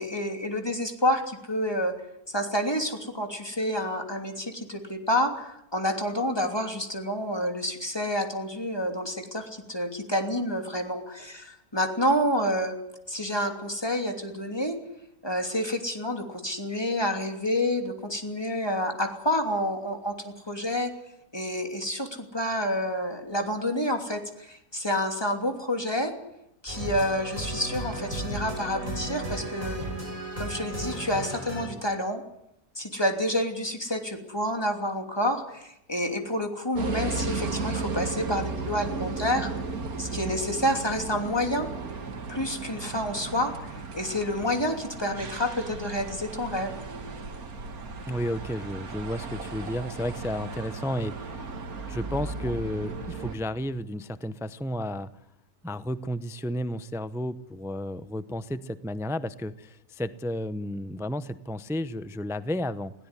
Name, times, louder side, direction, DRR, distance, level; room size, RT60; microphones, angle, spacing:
voice 1, 0.0-1.9 2.3-12.8 13.1-14.8 15.2-20.9 21.3-26.1 26.6-29.8 30.4-32.2 32.7-39.5 40.0-41.7 42.3-46.7, left 1 dB, 15° left, 4 dB, 3.0 m, -29 dB
sound 1, 26.7-31.7, right 1 dB, 20° right, 7.4 m, -34 dB
sound 2, 36.8-53.4, right 4 dB, 65° right, 2.2 m, -35 dB
voice 2, 48.1-51.5 51.9-55.1 55.6-62.9, equal, 5° right, 14 dB, 0.3 m, -32 dB
21.0 x 17.0 x 9.9 m, 0.81 s
omnidirectional pair, 1.6 m